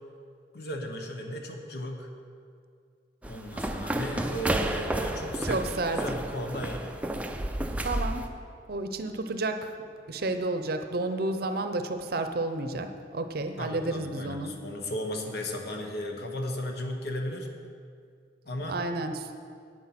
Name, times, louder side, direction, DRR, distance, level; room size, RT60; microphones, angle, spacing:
voice 1, 0.5-2.1 3.3-5.6 5.9-7.0 13.6-17.5 18.4-18.8, equal, 60° left, 3 dB, 1.2 m, -35 dB
sound 1, 3.2-8.3, right 1 dB, 10° right, 0.5 m, -31 dB
voice 2, 5.4-6.0 7.8-8.3 8.7-9.7 10.1-14.5 18.7-19.1, right 2 dB, 55° right, 8 dB, 0.7 m, -31 dB
9.7 x 9.2 x 5.9 m, 2.3 s
head